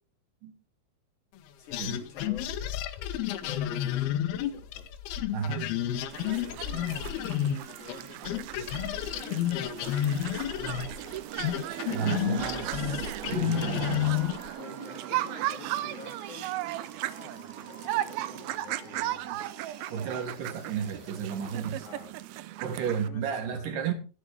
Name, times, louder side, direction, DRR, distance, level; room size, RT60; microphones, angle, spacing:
voice 1, 1.6-2.5 3.4-4.9 6.3-8.5 9.0-10.4 11.6-11.8 14.6-19.2 20.1-20.3 21.8-23.8, left 5 dB, 55° left, 3.7 m, -49 dB
sound 1, 1.7-8.0 8.3-14.5, left 11 dB, 90° left, 2.8 m, -31 dB
voice 2, 5.3-5.8 11.9-14.2 19.9-21.9 22.6-23.9, right 7 dB, 65° right, 3.1 m, -33 dB
sound 2, 6.1-23.1, right 15 dB, 85° right, 2.5 m, -36 dB
sound 3, 11.8-21.8, left 3 dB, 30° left, 1.6 m, -51 dB
13.5 x 10.5 x 3.5 m
omnidirectional pair, 4.3 m